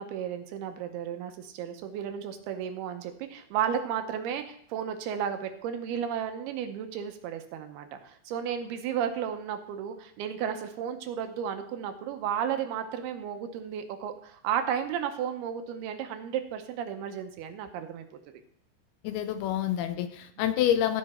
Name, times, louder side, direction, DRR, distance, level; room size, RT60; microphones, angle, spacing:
voice 1, 0.0-18.0, right 8 dB, 75° right, 7 dB, 2.7 m, -33 dB
voice 2, 19.0-21.0, left 11 dB, 80° left, 9 dB, 2.4 m, -27 dB
14.0 x 5.6 x 4.3 m, 0.67 s
omnidirectional pair, 4.7 m